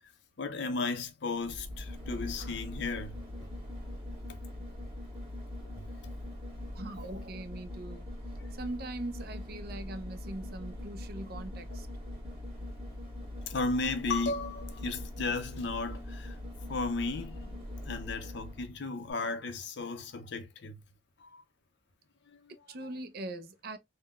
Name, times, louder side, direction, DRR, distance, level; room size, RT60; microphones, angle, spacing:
voice 1, 0.4-3.5 5.8-5.9 13.5-16.4 16.7-17.6 17.8-20.8 21.2-21.4 22.3-23.0, left 3 dB, 65° left, 0.6 m, -35 dB
sound 1, 1.4-18.7 19.1-19.2, left 1 dB, 30° right, 1.5 m, -42 dB
voice 2, 6.8-8.0 8.6-11.9 22.7-23.8, right 2 dB, 55° right, 0.5 m, -41 dB
3.6 x 2.1 x 2.3 m
head